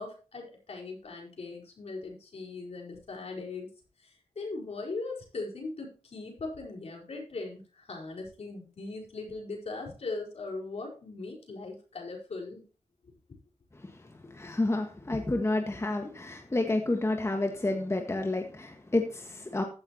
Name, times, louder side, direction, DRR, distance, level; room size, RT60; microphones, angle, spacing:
voice 1, 0.0-3.7 4.0-12.6 14.4-14.5, left 3 dB, 65° left, 0 dB, 4.8 m, -39 dB
voice 2, 14.2-19.6, left 2 dB, 25° left, 4 dB, 1.6 m, -30 dB
15.0 x 8.7 x 3.0 m, 0.35 s
cardioid pair, 75°, 12 cm